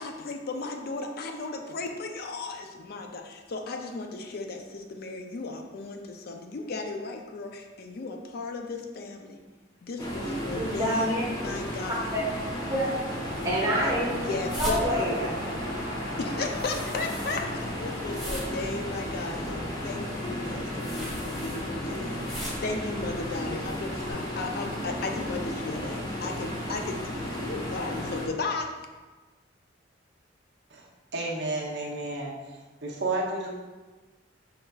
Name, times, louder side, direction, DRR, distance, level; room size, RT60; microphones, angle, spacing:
voice 1, 0.0-9.4 9.8-12.1 14.2-14.8 16.2-28.7, left 3 dB, 55° left, 3 dB, 0.4 m, -35 dB
sound 1, 10.0-28.3, left 1 dB, 20° left, 0.7 m, -34 dB
voice 2, 10.2-11.2 12.1-12.2 12.7-12.9 13.4-14.1 14.6-15.3, equal, 20° right, -5 dB, 1.2 m, -27 dB
sound 2, 11.0-20.3, equal, 80° left, 0.8 m, -42 dB
sound 3, 13.2-24.1, equal, ahead, 1.3 m, -42 dB
voice 3, 31.1-32.3 32.8-33.6, right 2 dB, 60° right, -2 dB, 0.7 m, -31 dB
5.3 x 3.8 x 2.3 m, 1.3 s
head